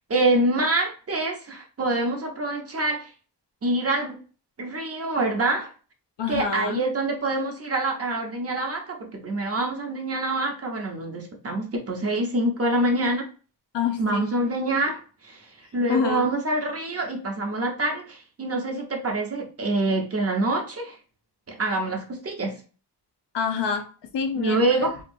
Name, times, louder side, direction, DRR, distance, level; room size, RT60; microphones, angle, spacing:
voice 1, 0.1-3.1 3.6-4.2 4.6-5.7 6.3-13.3 14.0-21.0 21.5-22.6 24.4-25.0, right 2 dB, 35° right, 0.7 m, -26 dB
voice 2, 6.2-6.8 13.7-14.2 15.9-16.3 23.3-24.9, left 7 dB, 75° left, 0.6 m, -27 dB
2.8 x 2.3 x 2.6 m
wide cardioid pair, 115°, 42 cm